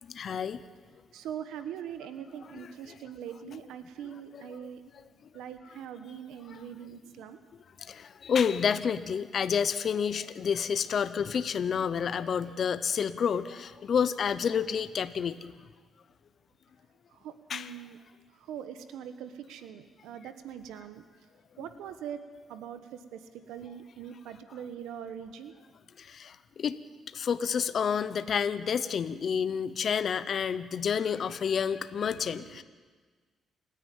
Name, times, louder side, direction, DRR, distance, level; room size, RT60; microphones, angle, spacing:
voice 1, 0.1-0.6 2.5-2.9 4.3-4.4 6.5-6.6 7.8-15.6 17.5-17.7 26.0-26.8 27.1-32.6, left 7 dB, 55° left, 13 dB, 0.9 m, -29 dB
voice 2, 1.1-4.8 5.3-7.4 17.1-18.0 18.4-21.0 21.6-22.2 22.5-23.2 23.5-25.5 32.1-32.6, right 9 dB, 90° right, 10 dB, 1.2 m, -42 dB
28.5 x 9.9 x 9.2 m, 1.4 s
cardioid pair, 90°, 0 cm